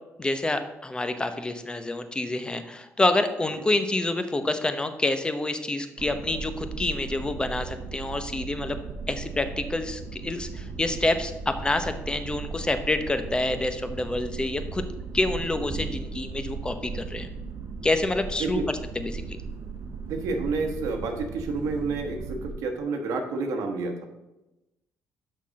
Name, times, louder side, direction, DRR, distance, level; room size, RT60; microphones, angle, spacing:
voice 1, 0.2-8.8 9.1-14.8 15.1-17.3 17.8-18.6 18.9-19.4, left 2 dB, 15° left, 9 dB, 0.8 m, -27 dB
sound 1, 6.0-22.5, right 4 dB, 60° right, 0.9 m, -37 dB
voice 2, 20.1-24.1, right 4 dB, 85° right, 3 dB, 1.1 m, -29 dB
6.4 x 5.8 x 6.2 m, 0.97 s
cardioid pair, 100°, 5 cm